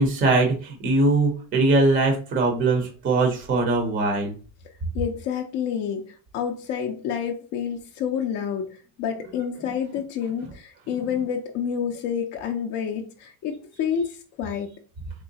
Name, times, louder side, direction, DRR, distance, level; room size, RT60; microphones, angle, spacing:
voice 1, 0.0-4.3, right 2 dB, 20° right, 2 dB, 0.5 m, -21 dB
voice 2, 4.9-14.7, left 8 dB, 40° left, 2 dB, 0.4 m, -29 dB
3.7 x 3.1 x 2.7 m, 0.39 s
cardioid pair, 155°, 46 cm